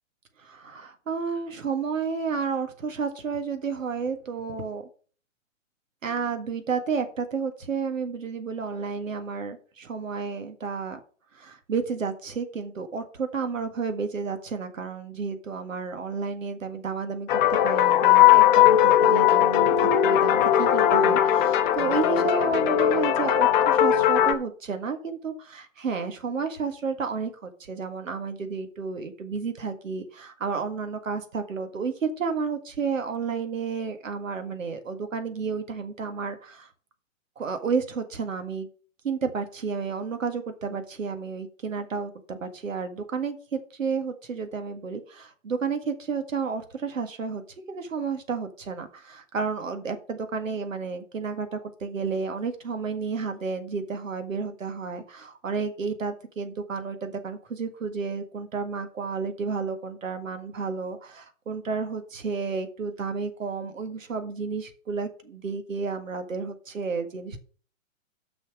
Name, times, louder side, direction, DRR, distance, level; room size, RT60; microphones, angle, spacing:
voice 1, 0.4-4.9 6.0-11.0 11.3-36.7 37.4-38.7 39.0-47.4 47.7-67.4, right 5 dB, 75° right, 7 dB, 1.8 m, -31 dB
sound 1, 17.3-24.3, left 11 dB, 35° left, 1.0 m, -19 dB
6.3 x 6.3 x 6.1 m, 0.41 s
hypercardioid pair, 125°, 39 cm